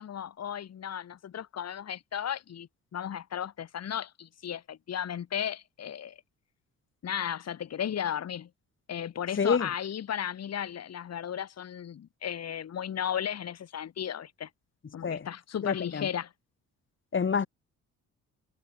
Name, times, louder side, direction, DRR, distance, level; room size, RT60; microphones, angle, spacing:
voice 1, 0.0-6.2 7.0-8.5 8.9-14.5 14.9-16.3, left 9 dB, 55° left, 3.4 m, -35 dB
voice 2, 9.4-9.7 15.0-15.3 15.6-16.1 17.1-17.5, left 6 dB, 40° left, 7.5 m, -27 dB
cardioid pair, 90°, 30 cm